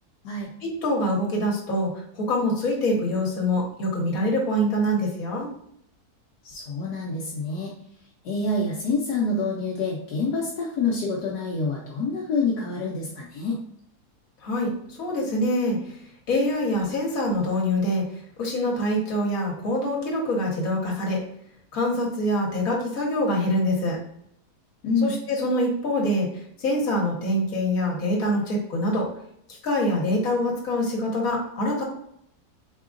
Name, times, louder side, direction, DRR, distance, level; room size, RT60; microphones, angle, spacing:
voice 1, 0.6-5.5 14.4-15.8 16.3-18.0 18.4-21.2 21.7-24.0 25.0-26.3 26.6-29.1 29.6-31.8, left 1 dB, 60° left, -2 dB, 1.6 m, -25 dB
voice 2, 6.4-7.7 8.2-13.5 24.8-25.1, left 3 dB, 80° left, -3 dB, 1.3 m, -27 dB
4.8 x 3.6 x 2.5 m, 0.74 s
omnidirectional pair, 1.7 m